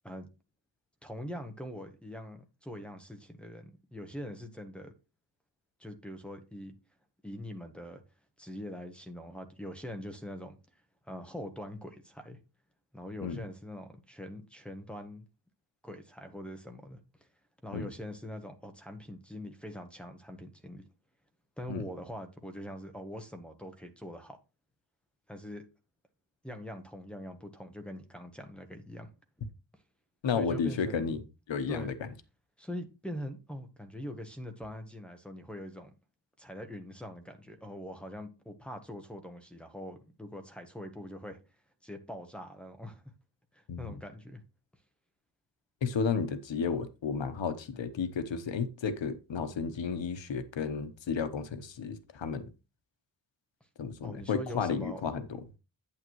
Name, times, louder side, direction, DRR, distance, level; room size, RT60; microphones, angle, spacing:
voice 1, 1.0-4.9 5.8-6.7 7.2-8.0 8.4-10.6 11.0-12.4 12.9-15.3 15.8-17.0 17.6-20.8 21.6-24.4 25.3-25.6 26.4-29.1 30.4-31.2 31.7-31.9 32.6-35.9 36.4-41.4 41.8-43.0 43.5-44.4 54.0-55.1, equal, ahead, 1.0 m, -43 dB
voice 2, 30.2-31.2 31.5-31.9 43.7-44.0 45.8-52.5 53.8-55.3, left 5 dB, 90° left, 1.0 m, -32 dB
8.7 x 8.7 x 3.1 m
wide cardioid pair, 170°, 44 cm